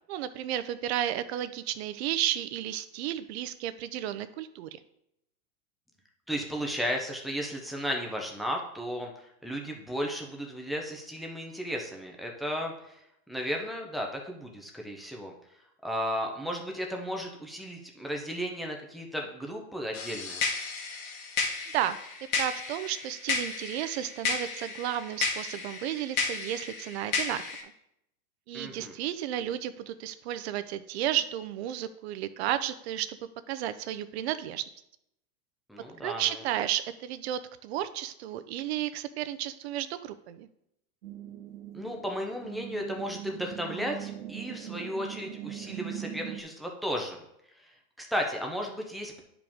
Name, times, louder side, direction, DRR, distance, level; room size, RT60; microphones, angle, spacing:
voice 1, 0.1-4.7 21.7-22.0 22.4-27.7 28.5-33.2 33.5-34.6 36.0-40.5, right 12 dB, 45° right, 12 dB, 0.6 m, -33 dB
voice 2, 6.3-13.0 13.3-15.3 15.8-20.4 28.5-28.9 35.7-36.4 41.7-47.2 47.6-47.7 48.0-49.2, equal, ahead, 0 dB, 0.6 m, -34 dB
sound 1, 19.9-27.6, left 4 dB, 65° left, 1.9 m, -33 dB
sound 2, 41.0-46.4, right 12 dB, 80° right, 1.1 m, -41 dB
10.5 x 5.0 x 3.5 m, 0.79 s
supercardioid pair, 145°, 44 cm